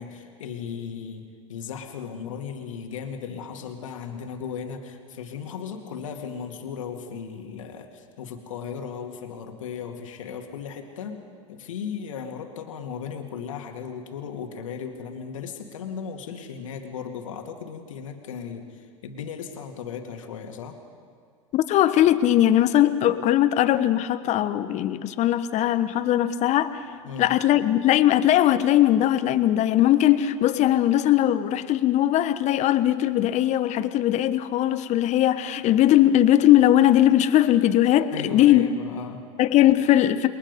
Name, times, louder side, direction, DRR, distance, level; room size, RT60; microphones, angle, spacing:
voice 1, 0.0-11.2 11.5-20.8 27.0-27.4 38.1-39.3, left 6 dB, 75° left, 4 dB, 2.2 m, -36 dB
voice 2, 21.5-26.8 27.2-38.7 39.4-40.3, left 12 dB, 45° left, 11 dB, 1.3 m, -20 dB
28.5 x 22.0 x 5.4 m, 2.2 s
hypercardioid pair, 85°, 17 cm